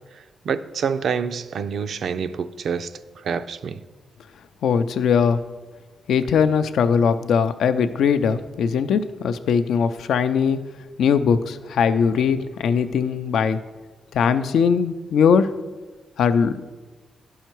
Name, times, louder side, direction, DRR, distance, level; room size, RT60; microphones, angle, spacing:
voice 1, 0.1-2.9 3.2-3.8, right 6 dB, 60° right, 0.4 m, -27 dB
voice 2, 4.6-5.4 6.1-10.6 11.0-13.6 14.1-15.5 16.2-16.6, left 6 dB, 80° left, 0.4 m, -20 dB
11.0 x 5.6 x 4.5 m
wide cardioid pair, 140°, 0 cm